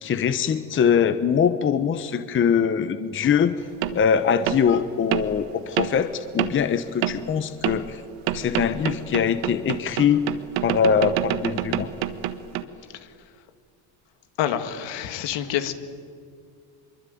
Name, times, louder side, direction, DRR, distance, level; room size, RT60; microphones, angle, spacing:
voice 1, 0.0-3.6 3.9-8.0 8.3-10.2 10.6-11.9, left 7 dB, 25° left, 11 dB, 0.9 m, -22 dB
sound 1, 3.8-4.0 4.5-4.6 5.1-5.4 5.8-6.0 6.4-6.6 7.0-7.3 7.6-7.9 8.3-12.6, right 13 dB, 80° right, 1.5 m, -27 dB
voice 2, 14.4-15.7, left 10 dB, 70° left, 9 dB, 2.1 m, -27 dB
24.0 x 23.0 x 9.3 m, 2.3 s
cardioid pair, 140°, 46 cm